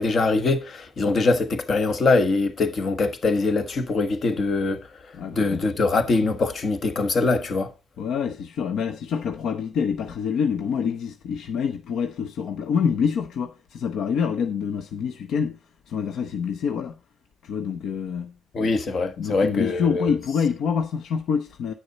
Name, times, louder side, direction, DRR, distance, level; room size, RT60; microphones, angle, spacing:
voice 1, 0.0-4.9 5.3-7.7 18.5-20.1, left 3 dB, 50° left, 1.4 m, -23 dB
voice 2, 5.1-5.6 8.0-15.6 15.9-16.9 17.4-18.3 19.2-21.7, left 6 dB, 75° left, 0.8 m, -26 dB
9.5 x 6.6 x 4.0 m
cardioid pair, 90°, 0 cm